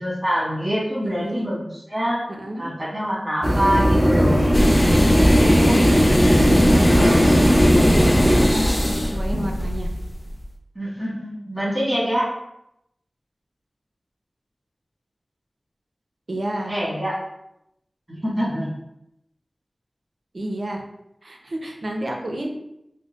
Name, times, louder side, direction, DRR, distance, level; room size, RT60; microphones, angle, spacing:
voice 1, 0.0-2.3 2.6-4.5 9.1-9.2 10.7-12.3 16.7-17.2 18.1-18.7, equal, 20° right, -6 dB, 1.4 m, -25 dB
voice 2, 1.0-1.5 2.3-2.6 5.2-6.1 6.7-9.9 16.3-16.7 20.3-20.8 21.2-22.5, right 1 dB, 65° right, 1 dB, 0.5 m, -31 dB
sound 1, 3.4-8.4, equal, 5° right, 0.7 m, -17 dB
sound 2, 4.5-10.5, left 1 dB, 30° left, 0.4 m, -21 dB
4.3 x 2.1 x 2.4 m, 0.83 s
wide cardioid pair, 55°, 0 cm